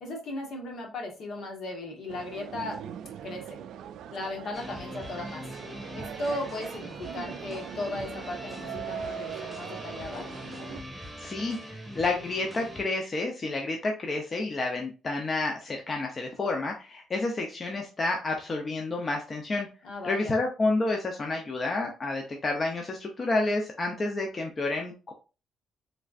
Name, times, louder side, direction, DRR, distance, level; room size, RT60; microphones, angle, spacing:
voice 1, 0.0-2.8 3.2-3.6 4.1-5.4 5.9-10.3 19.8-20.3, left 2 dB, 65° left, 1 dB, 1.4 m, -36 dB
sound 1, 2.1-10.8, right 8 dB, 80° right, 0.3 m, -41 dB
sound 2, 4.5-12.8, equal, 5° right, 1.5 m, -42 dB
voice 2, 11.0-19.7 20.0-25.1, left 2 dB, 35° left, 1 dB, 0.7 m, -30 dB
3.7 x 3.3 x 2.5 m, 0.33 s
cardioid pair, 90°, 0 cm